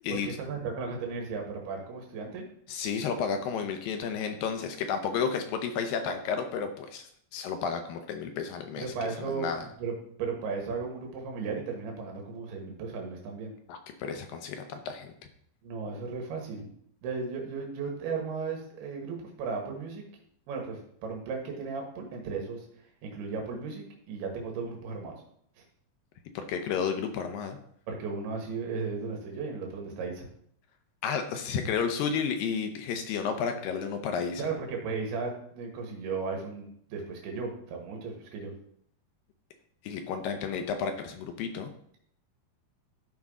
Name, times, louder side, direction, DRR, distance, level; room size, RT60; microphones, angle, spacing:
voice 1, 0.1-2.4 8.8-9.5 9.8-13.5 15.6-16.7 17.0-20.0 20.5-22.7 23.0-25.2 27.9-30.3 34.4-38.5, right 4 dB, 85° right, 1 dB, 3.5 m, -35 dB
voice 2, 2.7-8.9 9.2-9.6 13.7-15.1 26.4-27.6 31.0-34.4 39.8-41.7, left 6 dB, 75° left, 6 dB, 2.3 m, -32 dB
12.0 x 5.4 x 3.6 m, 0.67 s
omnidirectional pair, 4.5 m